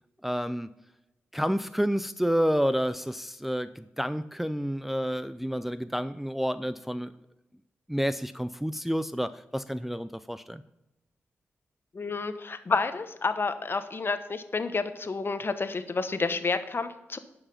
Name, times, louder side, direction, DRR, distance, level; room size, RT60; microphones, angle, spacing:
voice 1, 0.2-0.7 1.3-7.1 7.9-10.6, equal, 5° right, 12 dB, 0.5 m, -29 dB
voice 2, 11.9-17.2, left 4 dB, 45° left, 10 dB, 1.0 m, -30 dB
10.5 x 5.7 x 5.8 m, 0.96 s
supercardioid pair, 45°, 5 cm